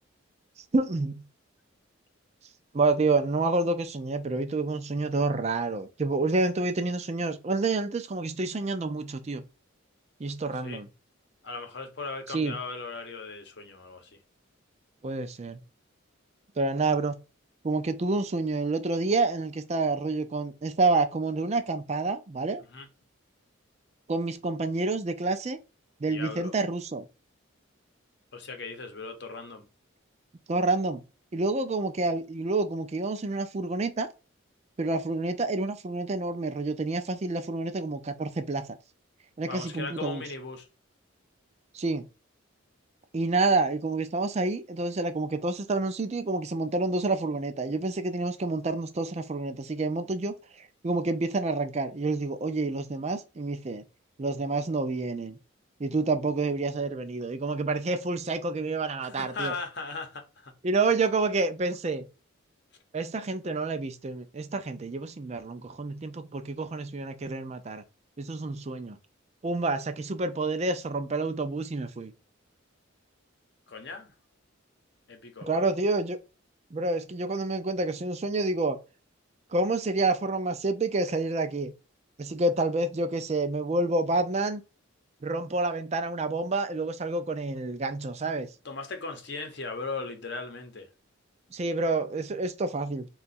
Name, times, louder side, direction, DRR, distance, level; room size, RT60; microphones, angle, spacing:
voice 1, 0.7-1.2 2.7-9.4 10.2-10.9 12.3-12.6 15.0-15.6 16.6-17.2 17.6-22.6 24.1-25.6 26.0-27.0 30.5-31.0 31.3-34.1 34.8-38.8 39.4-40.2 41.7-42.0 43.1-53.8 54.2-55.4 55.8-59.5 60.6-62.1 62.9-67.8 68.2-69.0 69.4-72.1 75.5-76.2 76.7-78.8 79.5-81.7 82.2-84.6 85.2-88.5 91.5-93.1, right 3 dB, 30° right, 0.4 m, -28 dB
voice 2, 11.4-14.2 22.7-22.9 26.1-26.5 28.3-29.7 39.4-40.7 59.0-60.5 73.7-74.1 75.1-75.7 88.6-90.9, left 4 dB, 55° left, 0.8 m, -38 dB
3.8 x 2.3 x 4.1 m
head